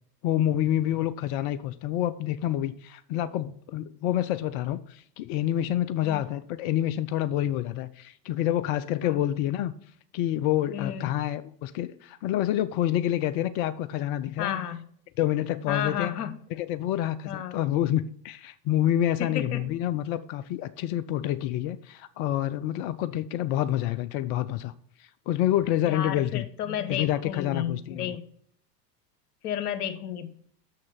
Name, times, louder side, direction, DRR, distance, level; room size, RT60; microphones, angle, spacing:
voice 1, 0.2-9.7 10.1-14.6 15.2-16.1 16.6-24.7 25.0-26.4 26.9-28.1, left 12 dB, 35° left, 0.4 m, -28 dB
voice 2, 10.7-11.1 14.4-14.9 15.7-16.3 17.2-17.6 19.2-19.7 25.8-28.2 29.4-30.3, left 9 dB, 65° left, 1.1 m, -32 dB
6.5 x 6.4 x 5.7 m
figure-of-eight pair, 85°, 49 cm